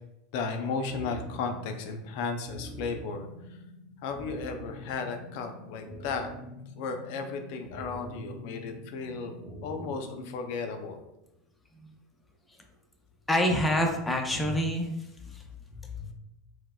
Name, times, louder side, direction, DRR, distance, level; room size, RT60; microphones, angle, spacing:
voice 1, 0.3-3.3 4.0-6.3 6.8-9.3 9.6-11.0, left 4 dB, 65° left, 6 dB, 0.4 m, -34 dB
sound 1, 0.9-10.9, equal, 20° right, 0.9 m, -45 dB
voice 2, 13.3-14.9 15.2-15.4 16.0-16.1, left 1 dB, 10° left, 3 dB, 0.5 m, -27 dB
4.5 x 2.1 x 2.3 m, 0.90 s
hypercardioid pair, 100°, 0 cm